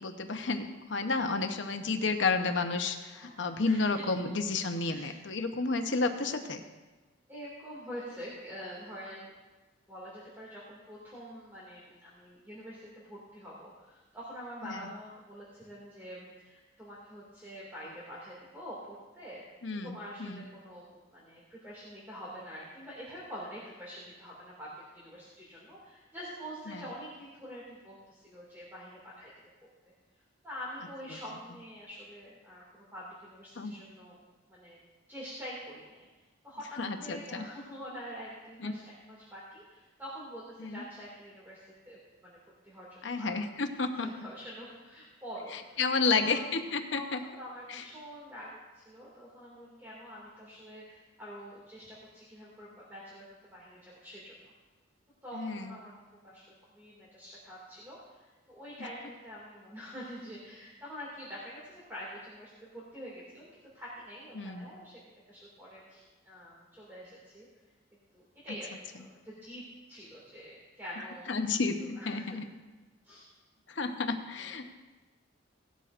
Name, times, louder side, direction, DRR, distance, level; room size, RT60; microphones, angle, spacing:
voice 1, 0.0-6.6 14.6-14.8 19.6-20.4 26.7-26.8 33.6-33.7 36.8-37.4 38.6-38.7 40.6-40.8 43.0-44.1 45.8-47.2 47.7-47.8 55.3-55.7 64.3-64.7 71.3-72.5 73.7-74.7, left 4 dB, 65° left, 6 dB, 0.9 m, -31 dB
voice 2, 3.1-4.3 4.8-5.2 6.1-6.4 7.3-9.3 9.9-19.4 19.8-29.3 30.4-34.2 34.5-34.8 35.1-36.1 36.4-42.4 42.6-43.3 43.9-46.5 46.9-54.5 55.2-65.0 65.3-67.5 68.1-68.7 69.0-71.3 71.9-72.4 73.0-73.3 74.4-74.6, equal, 10° right, -7 dB, 2.2 m, -46 dB
17.0 x 12.0 x 2.5 m, 1.2 s
head